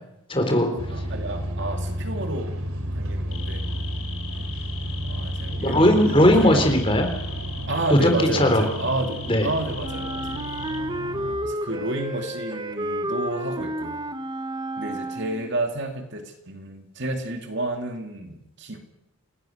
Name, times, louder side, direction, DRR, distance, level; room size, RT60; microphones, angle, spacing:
voice 1, 0.3-0.7 5.6-7.1 7.9-8.6 9.3-9.5, left 1 dB, 25° left, 4 dB, 3.8 m, -18 dB
sound 1, 0.8-11.3, equal, 75° right, 3.1 m, -31 dB
voice 2, 0.9-2.6 2.9-3.7 5.0-6.0 6.4-6.7 7.7-10.5 11.4-14.0 14.8-18.8, right 2 dB, 50° right, 5 dB, 2.6 m, -30 dB
sound 2, 3.3-11.2 11.5-11.8, left 7 dB, 75° left, 5.2 m, -40 dB
Wind instrument woodwind instrument, 9.8-15.6, right 1 dB, 20° right, 1.1 m, -31 dB
29.0 x 18.0 x 6.6 m, 0.85 s
head